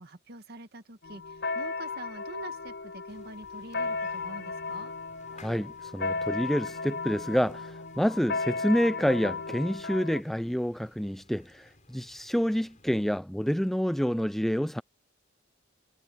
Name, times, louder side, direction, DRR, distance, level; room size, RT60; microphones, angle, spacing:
voice 1, 0.0-4.9, right 2 dB, 50° right, 2.0 m, -45 dB
sound 1, 1.0-10.2, left 4 dB, 60° left, 4.3 m, -35 dB
sound 2, 3.1-13.2, left 3 dB, 40° left, 6.1 m, -59 dB
voice 2, 5.4-14.8, equal, ahead, 0.3 m, -28 dB
head